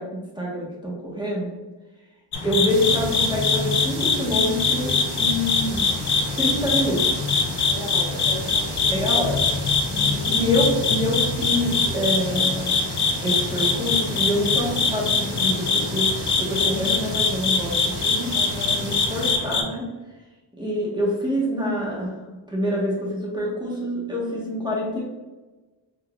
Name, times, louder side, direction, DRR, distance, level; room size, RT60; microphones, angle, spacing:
voice 1, 0.0-1.5 2.4-5.9 6.4-7.2 8.9-9.5 10.3-12.7 13.2-16.1 16.4-18.4 18.8-19.9 20.6-22.2 22.5-25.0, left 1 dB, 10° right, -4 dB, 1.2 m, -26 dB
sound 1, 2.3-19.6, left 4 dB, 55° left, 0.6 m, -23 dB
sound 2, 2.7-19.4, right 4 dB, 85° right, 0.7 m, -37 dB
voice 2, 7.6-9.0 9.8-10.3 18.3-18.8, equal, 5° left, -8 dB, 0.9 m, -36 dB
3.8 x 2.7 x 2.3 m, 1.2 s
cardioid pair, 50°, 49 cm